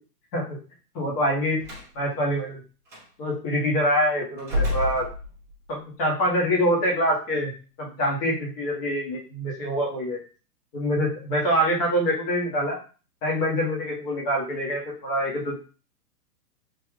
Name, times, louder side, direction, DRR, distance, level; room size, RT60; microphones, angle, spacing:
voice 1, 0.9-1.6 1.9-2.6 3.2-5.1 5.7-7.5 7.8-10.2 10.7-12.8 13.2-15.6, equal, 20° left, -3 dB, 1.2 m, -25 dB
Slam, 1.6-1.9 2.9-3.0 4.4-5.7, left 2 dB, 5° right, 0.7 m, -29 dB
3.7 x 2.9 x 3.1 m, 0.37 s
hypercardioid pair, 155°, 48 cm